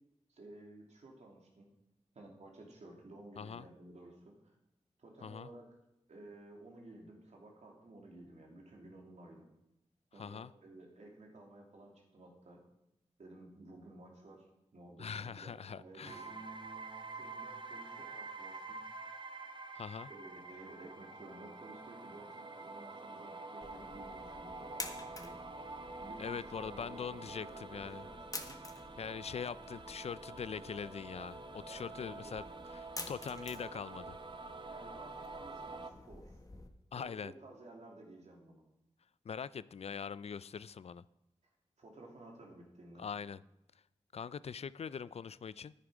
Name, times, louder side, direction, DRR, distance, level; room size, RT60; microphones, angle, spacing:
voice 1, 0.3-1.7 2.1-4.5 5.0-5.6 6.1-9.5 10.1-12.6 13.2-14.5 14.7-16.3 17.1-18.8 20.1-25.4 26.0-28.2 28.4-28.6 31.7-32.6 34.7-36.4 36.9-38.6 41.8-43.0, right 2 dB, 70° right, 0 dB, 2.8 m, -54 dB
voice 2, 10.2-10.5 15.0-16.3 19.7-20.1 26.2-28.1 29.0-32.4 32.7-34.2 36.9-37.3 39.2-41.0 43.0-43.4 44.1-45.7, left 6 dB, 60° left, 18 dB, 0.4 m, -42 dB
sound 1, 16.0-35.9, right 3 dB, 40° right, 1.0 m, -47 dB
sound 2, 23.6-36.7, left 2 dB, 30° left, 1.5 m, -50 dB
10.0 x 9.8 x 5.0 m, 0.89 s
cardioid pair, 45°, 12 cm